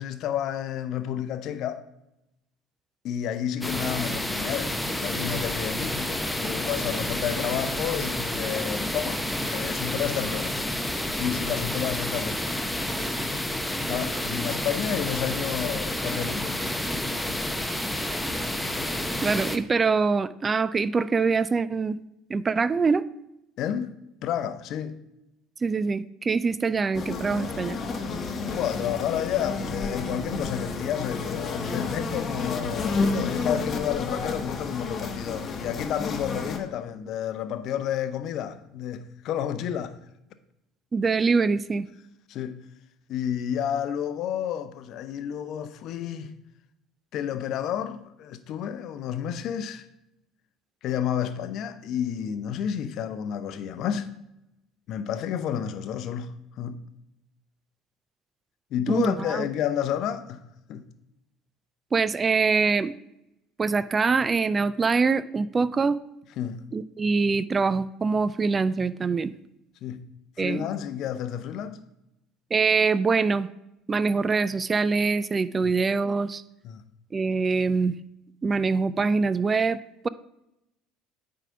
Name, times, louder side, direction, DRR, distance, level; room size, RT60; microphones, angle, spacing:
voice 1, 0.0-1.8 3.0-9.2 9.5-10.6 11.2-13.1 13.9-16.8 17.0-18.3 23.6-23.9 24.2-25.0 28.5-39.9 42.3-42.6 43.1-46.3 47.1-49.9 50.8-54.2 54.9-56.8 58.7-60.4 60.7-60.8 66.4-66.6 69.8-70.0 70.4-71.8 75.6-75.7 76.6-76.8, left 9 dB, 55° left, 0.6 m, -31 dB
sound 1, 3.6-19.6, left 1 dB, 5° left, 0.8 m, -29 dB
voice 2, 19.2-22.0 22.3-23.0 25.6-27.8 40.9-41.9 58.9-59.4 61.9-62.9 63.6-66.0 66.7-69.3 70.4-70.6 72.5-73.5 73.9-76.4 77.1-78.0 78.4-79.8, right 4 dB, 30° right, 0.4 m, -24 dB
sound 2, 26.9-36.6, left 4 dB, 40° left, 1.1 m, -30 dB
9.0 x 3.8 x 5.7 m
hypercardioid pair, 65°, 0 cm